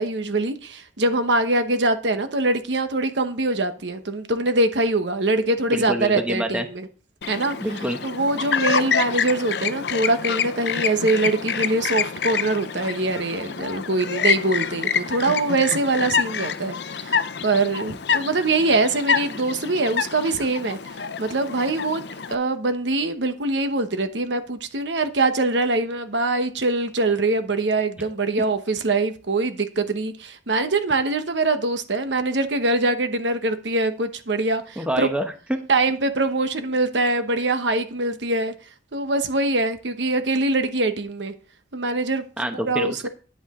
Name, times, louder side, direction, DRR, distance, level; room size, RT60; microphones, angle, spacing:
voice 1, 0.0-6.9 7.3-7.6 8.0-20.8 21.2-22.0 22.3-35.1 35.7-38.5 38.9-41.3 41.7-42.2 42.7-43.1, right 2 dB, 80° right, 1.1 m, -23 dB
voice 2, 5.7-6.7 7.6-8.0 34.8-35.6 42.4-43.1, equal, 5° right, 0.9 m, -26 dB
Chirp tweet, 7.2-22.3, left 7 dB, 65° left, 0.6 m, -27 dB
9.9 x 8.5 x 3.7 m
head